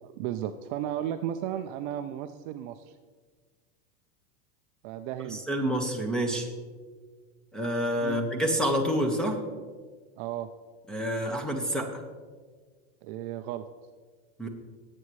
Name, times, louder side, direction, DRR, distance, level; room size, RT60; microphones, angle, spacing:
voice 1, 0.0-3.0 4.8-5.4 8.0-8.2 10.2-10.5 13.0-13.6, right 11 dB, 45° right, 8 dB, 0.5 m, -34 dB
voice 2, 5.2-6.5 7.5-9.4 10.9-12.0 14.4-14.5, equal, ahead, 4 dB, 1.3 m, -28 dB
19.0 x 8.6 x 3.2 m, 1.5 s
supercardioid pair, 135°, 36 cm